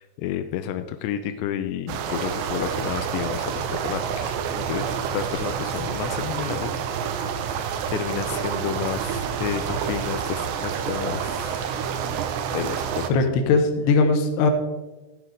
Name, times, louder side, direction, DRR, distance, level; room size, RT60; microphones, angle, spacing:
voice 1, 0.0-7.3 7.9-11.8 12.5-13.2, left 10 dB, 90° left, 9 dB, 2.5 m, -31 dB
sound 1, 1.9-13.1, right 7 dB, 80° right, 2.6 m, -28 dB
voice 2, 13.1-14.5, left 3 dB, 75° left, 5 dB, 2.8 m, -19 dB
13.5 x 9.4 x 3.4 m, 1.1 s
omnidirectional pair, 5.7 m